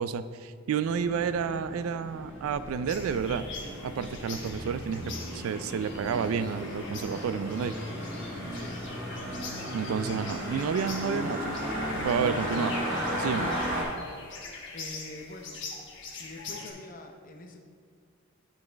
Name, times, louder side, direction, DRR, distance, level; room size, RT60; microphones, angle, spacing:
voice 1, 0.0-3.5 3.8-7.7 9.7-11.6 12.0-12.8 13.1-13.5, right 6 dB, 75° right, 12 dB, 0.3 m, -30 dB
sound 1, 0.8-13.8, equal, 40° right, 2.0 m, -35 dB
sound 2, 2.9-16.7, left 4 dB, 55° left, 1.1 m, -44 dB
sound 3, 5.8-13.1, equal, 15° right, 1.0 m, -49 dB
voice 2, 8.5-8.9 14.7-15.6 16.2-17.6, left 2 dB, 40° left, 3 dB, 0.7 m, -45 dB
11.5 x 4.3 x 3.4 m, 2.1 s
head